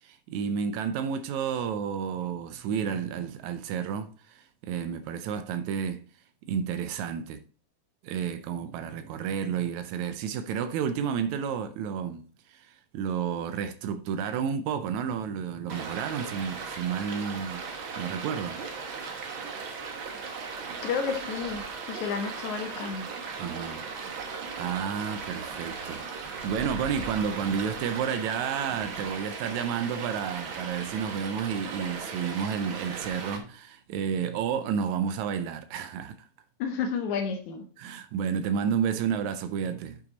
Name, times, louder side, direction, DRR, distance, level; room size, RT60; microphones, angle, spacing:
voice 1, 0.0-6.0 6.5-7.4 8.0-17.6 18.0-18.6 23.4-23.9 24.5-36.3 37.8-40.0, right 7 dB, 85° right, 1.9 m, -31 dB
Stream, 15.7-33.4, right 5 dB, 50° right, 1.8 m, -37 dB
voice 2, 20.8-23.1 36.6-37.7, left 6 dB, 80° left, 2.6 m, -31 dB
9.7 x 5.7 x 4.0 m
omnidirectional pair, 3.3 m